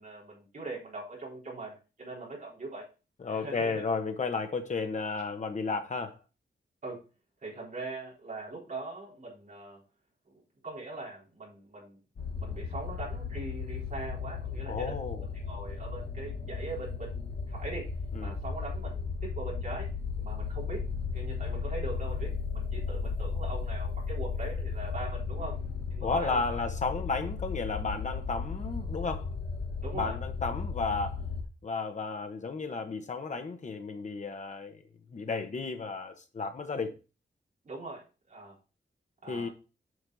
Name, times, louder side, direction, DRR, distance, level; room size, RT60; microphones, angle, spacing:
voice 1, 0.0-2.9 3.3-3.8 6.8-7.0 7.4-9.8 10.3-12.0 12.3-17.9 18.2-19.9 20.2-20.8 21.1-25.6 25.9-26.6 29.8-30.1 37.6-38.0 38.3-38.5 39.2-39.5, right 3 dB, 45° right, 3.9 m, -41 dB
voice 2, 3.2-6.2 14.7-15.3 18.1-18.4 26.0-29.3 29.9-31.2 31.6-34.8 35.1-36.9 39.3-39.5, left 4 dB, 40° left, 1.0 m, -33 dB
sound 1, 12.2-31.4, left 5 dB, 65° left, 1.5 m, -35 dB
8.0 x 5.3 x 4.0 m
wide cardioid pair, 180°, 18 cm